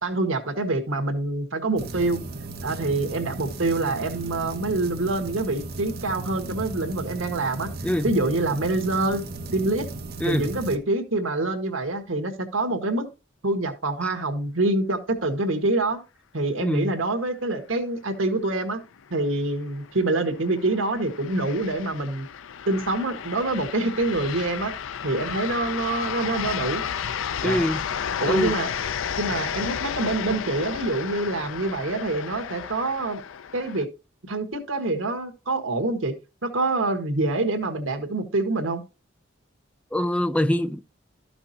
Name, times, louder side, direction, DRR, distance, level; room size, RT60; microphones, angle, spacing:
voice 1, 0.0-2.2 2.6-7.7 8.0-9.2 9.5-9.9 10.2-13.1 13.4-16.0 16.3-18.8 19.1-22.3 22.7-24.7 25.0-26.8 27.4-27.6 28.2-28.7 29.2-33.2 33.5-33.9 34.3-36.1 36.4-38.8, right 2 dB, 90° right, 1.5 m, -26 dB
sound 1, 1.8-10.8, right 3 dB, 50° right, 1.0 m, -36 dB
voice 2, 16.6-16.9 27.4-27.8 28.3-28.6 39.9-40.8, equal, 5° left, 0.4 m, -24 dB
sound 2, 19.0-33.8, left 8 dB, 85° left, 0.4 m, -33 dB
13.0 x 6.0 x 2.8 m
head